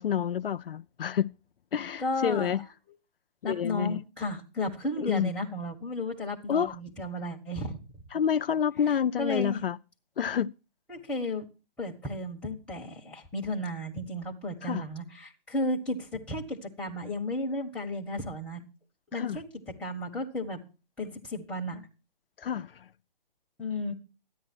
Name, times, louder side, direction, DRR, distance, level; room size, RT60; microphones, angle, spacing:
voice 1, 0.0-1.3 1.7-2.6 3.4-4.0 5.0-5.3 6.5-6.8 8.1-9.8 10.2-10.5 14.6-14.8 19.1-19.4 22.4-22.8, left 8 dB, 70° left, 0.5 m, -28 dB
voice 2, 2.0-2.5 3.4-7.8 8.9-9.6 10.9-11.4 11.8-18.6 19.1-20.6 21.0-21.9 23.6-23.9, left 1 dB, 5° left, 1.6 m, -33 dB
13.5 x 10.0 x 4.6 m
hypercardioid pair, 150°, 29 cm